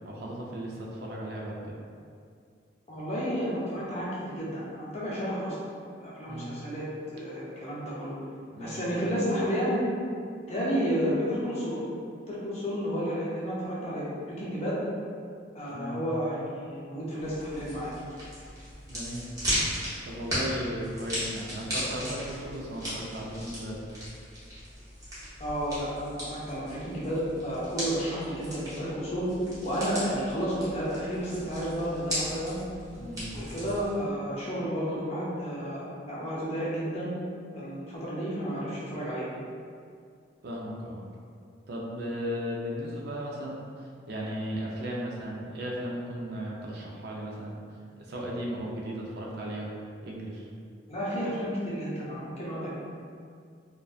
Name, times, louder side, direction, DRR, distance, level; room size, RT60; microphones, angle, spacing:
voice 1, 0.0-1.7 6.3-6.5 8.5-8.8 15.7-16.0 18.9-19.3 20.0-23.8 32.9-33.3 40.4-41.0 41.7-47.6 48.0-49.7 50.0-50.5, equal, 55° right, -3 dB, 0.3 m, -36 dB
voice 2, 2.9-5.6 6.0-8.2 8.6-9.8 10.5-11.8 12.3-14.8 15.5-17.9 25.4-29.3 29.6-32.6 33.3-37.1 37.5-39.3 50.9-52.7, equal, 35° left, -7 dB, 0.5 m, -31 dB
sound 1, 17.2-33.9, equal, 20° right, 0.6 m, -37 dB
2.4 x 2.1 x 2.3 m, 2.3 s
head